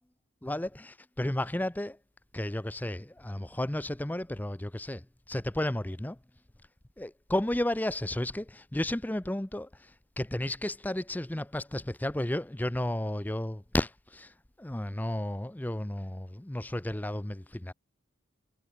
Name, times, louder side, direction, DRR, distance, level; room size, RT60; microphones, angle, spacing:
voice 1, 0.4-2.0 2.3-5.0 5.3-6.2 7.0-9.7 10.2-14.3 14.6-17.7, left 1 dB, 10° left, 0.5 m, -32 dB
head